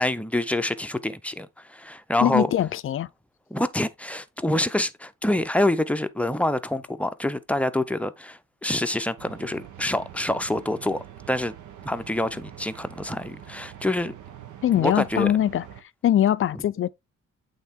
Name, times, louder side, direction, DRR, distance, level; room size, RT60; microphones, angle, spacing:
voice 1, 0.0-2.5 3.5-11.5 11.8-14.1 14.8-15.3, left 1 dB, 5° left, 0.6 m, -26 dB
voice 2, 2.2-3.1 14.6-15.6 16.0-16.9, left 11 dB, 45° left, 0.4 m, -22 dB
sound 1, 9.2-15.8, right 10 dB, 75° right, 1.1 m, -44 dB
8.3 x 3.7 x 3.6 m
cardioid pair, 90°, 30 cm